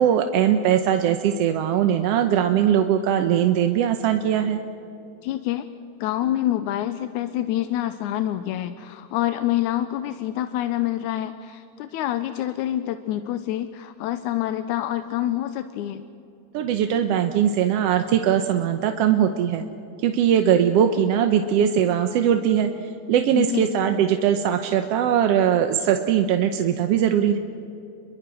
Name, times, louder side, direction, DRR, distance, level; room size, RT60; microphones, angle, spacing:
voice 1, 0.0-4.6 16.5-19.7 20.0-27.4, right 9 dB, 65° right, 6 dB, 1.7 m, -20 dB
voice 2, 5.2-5.7 6.0-16.0 23.3-23.7, left 13 dB, 85° left, 10 dB, 2.1 m, -26 dB
30.0 x 22.5 x 6.3 m, 2.7 s
omnidirectional pair, 3.4 m